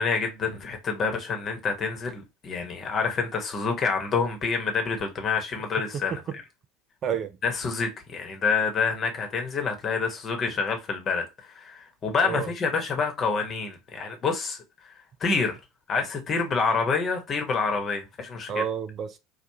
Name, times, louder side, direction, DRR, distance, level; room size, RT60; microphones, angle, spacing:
voice 1, 0.0-6.2 7.4-14.6 14.8-15.6 15.9-18.6, left 5 dB, 35° left, 1.2 m, -27 dB
voice 2, 5.9-6.4 7.0-7.4 12.2-12.5 18.5-19.2, right 8 dB, 40° right, 0.4 m, -30 dB
3.3 x 2.4 x 2.8 m
figure-of-eight pair, 70°, 0 cm